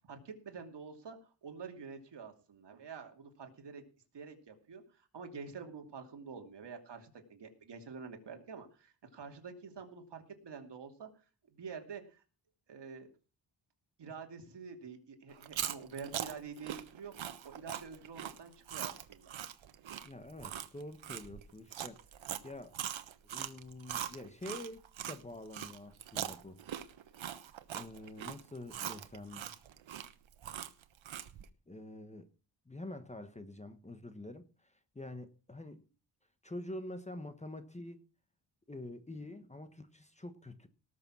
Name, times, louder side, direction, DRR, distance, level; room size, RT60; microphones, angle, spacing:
voice 1, 0.0-3.8 4.1-11.1 11.5-12.2 12.7-13.1 14.0-19.4, right 5 dB, 65° right, 2.8 m, -47 dB
Chewing mastication, 15.3-25.2 25.5-31.5, right 10 dB, 85° right, 1.2 m, -41 dB
voice 2, 20.0-22.0 22.4-22.8 23.3-26.6 27.7-29.5 31.7-32.3 32.7-35.8 36.4-38.0 38.7-40.7, left 1 dB, 15° left, 1.2 m, -46 dB
18.5 x 6.8 x 6.1 m
wide cardioid pair, 135°, 45 cm